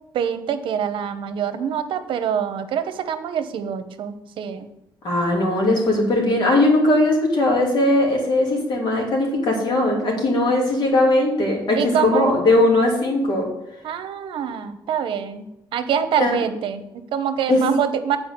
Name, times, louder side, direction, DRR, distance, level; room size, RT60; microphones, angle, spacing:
voice 1, 0.1-4.7 11.8-12.3 13.8-15.5 15.7-18.2, right 8 dB, 80° right, 10 dB, 0.8 m, -25 dB
voice 2, 5.0-13.5 16.2-16.4 17.5-17.7, left 1 dB, 60° left, -1 dB, 2.8 m, -19 dB
8.8 x 4.8 x 6.6 m, 0.85 s
cardioid pair, 130°, 9 cm